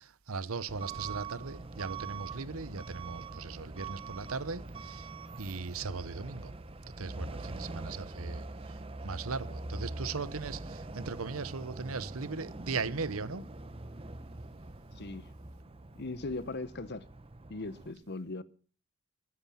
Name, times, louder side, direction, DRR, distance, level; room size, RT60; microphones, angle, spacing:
voice 1, 0.0-5.1 5.4-6.5 7.0-8.4 9.0-13.5, right 4 dB, 85° right, 1.0 m, -38 dB
Truck / Alarm, 0.7-17.9, right 3 dB, 25° right, 0.9 m, -43 dB
voice 2, 14.9-15.3 15.9-17.1 17.5-18.4, left 2 dB, 50° left, 0.9 m, -39 dB
20.5 x 9.8 x 5.8 m
head